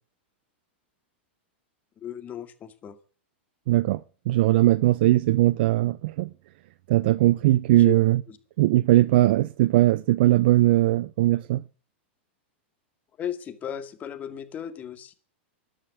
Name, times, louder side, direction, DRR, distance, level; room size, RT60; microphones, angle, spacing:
voice 1, 2.0-3.0 7.8-7.9 8.3-8.4 13.2-15.1, left 9 dB, 25° left, 2.3 m, -36 dB
voice 2, 3.7-6.3 6.9-8.2 8.6-11.6, right 15 dB, 60° right, 0.6 m, -20 dB
12.5 x 10.5 x 9.1 m
supercardioid pair, 135°, 6 cm